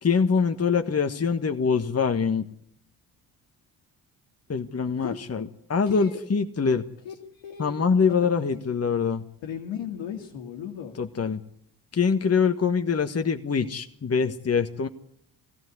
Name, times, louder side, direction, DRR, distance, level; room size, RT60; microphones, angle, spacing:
voice 1, 0.0-2.5 4.5-6.9 7.6-9.2 10.9-11.4 11.9-14.9, left 5 dB, 30° left, 7 dB, 1.5 m, -24 dB
voice 2, 5.9-6.2 7.1-7.8 8.1-8.2 9.4-10.9, left 9 dB, 75° left, 1 dB, 2.2 m, -36 dB
19.5 x 16.5 x 9.7 m, 0.72 s
hypercardioid pair, 45°, 47 cm